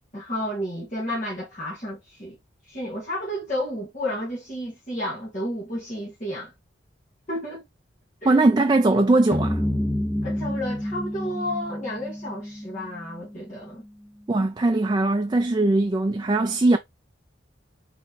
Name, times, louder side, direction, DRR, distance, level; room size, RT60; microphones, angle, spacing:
voice 1, 0.1-2.4 2.7-6.5 7.3-7.6 8.2-8.4 10.2-13.8, equal, 40° left, 1.6 m, -31 dB
voice 2, 8.2-9.6 14.3-16.8, right 2 dB, 20° right, 0.3 m, -20 dB
sound 1, 9.3-13.7, left 1 dB, 10° left, 0.7 m, -29 dB
4.2 x 3.1 x 4.1 m
head